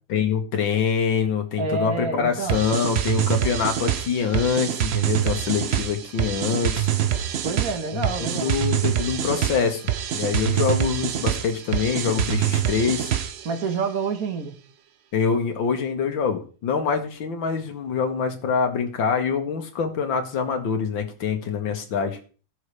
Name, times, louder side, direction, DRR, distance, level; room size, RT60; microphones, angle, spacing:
voice 1, 0.1-6.9 7.9-9.8 10.1-13.1 15.1-22.2, left 6 dB, 90° left, 5 dB, 2.2 m, -25 dB
voice 2, 1.6-2.6 7.4-8.5 13.4-14.5, right 4 dB, 50° right, 6 dB, 1.7 m, -27 dB
sound 1, 2.5-13.5, right 10 dB, 80° right, 0.5 m, -25 dB
17.0 x 6.4 x 3.3 m, 0.38 s
omnidirectional pair, 2.0 m